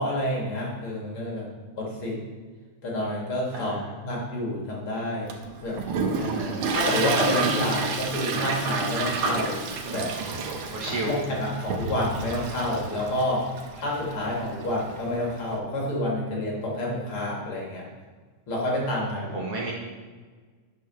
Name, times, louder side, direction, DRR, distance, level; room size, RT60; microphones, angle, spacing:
voice 1, 0.0-1.5 1.8-2.2 2.8-3.8 4.0-5.3 5.6-5.8 6.7-9.6 9.9-10.1 10.8-13.5 13.8-17.9 18.5-19.3, left 1 dB, 50° left, -4 dB, 2.5 m, -28 dB
voice 2, 3.5-3.9 6.1-6.7 10.7-11.2 19.0-19.7, right 2 dB, 55° right, -3 dB, 2.2 m, -33 dB
Toilet flush, 5.3-15.5, right 4 dB, 90° right, 2.5 m, -30 dB
8.5 x 6.3 x 6.2 m, 1.5 s
omnidirectional pair, 3.5 m